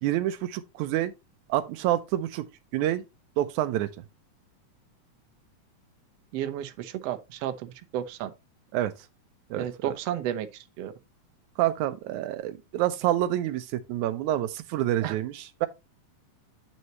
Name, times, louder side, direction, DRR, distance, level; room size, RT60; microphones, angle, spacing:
voice 1, 0.0-1.1 1.5-2.5 2.7-3.0 3.4-3.9 8.7-8.9 9.5-10.0 11.6-15.7, right 13 dB, 85° right, 2.1 m, -27 dB
voice 2, 6.3-8.3 9.5-10.9 15.0-15.2, right 11 dB, 70° right, 1.8 m, -32 dB
8.8 x 6.3 x 2.9 m
omnidirectional pair, 3.4 m